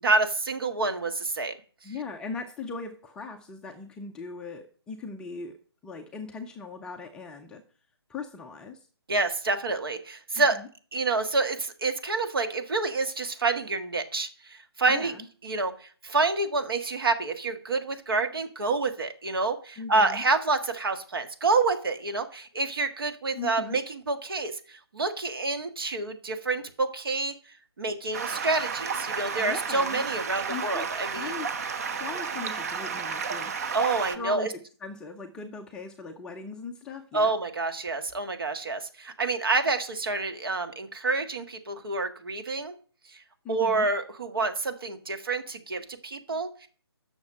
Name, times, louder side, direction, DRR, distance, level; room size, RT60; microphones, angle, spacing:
voice 1, 0.0-1.5 9.1-10.6 10.9-15.2 15.4-27.3 27.8-31.3 33.7-34.5 37.1-42.7 43.1-43.2 43.5-46.7, right 3 dB, 60° right, 7 dB, 1.6 m, -28 dB
voice 2, 1.8-5.6 5.8-7.6 8.1-8.8 10.4-10.7 14.9-15.3 19.8-20.2 23.3-23.8 29.4-30.0 30.5-30.8 31.1-31.5 32.0-33.5 34.1-34.5 34.8-37.3 43.4-43.9, left 4 dB, 5° left, 2 dB, 0.5 m, -39 dB
Stream, 28.1-34.2, right 5 dB, 35° right, 0.9 m, -32 dB
9.5 x 6.5 x 7.3 m, 0.42 s
figure-of-eight pair, 145°, 14 cm